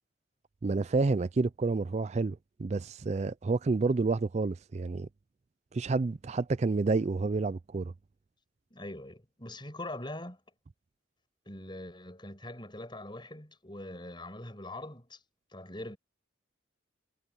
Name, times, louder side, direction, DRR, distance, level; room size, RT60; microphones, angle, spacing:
voice 1, 0.6-5.1 5.7-7.9, right 3 dB, 35° right, 0.4 m, -29 dB
voice 2, 8.7-10.4 11.5-15.2 15.5-16.0, left 1 dB, 25° left, 6.4 m, -42 dB
head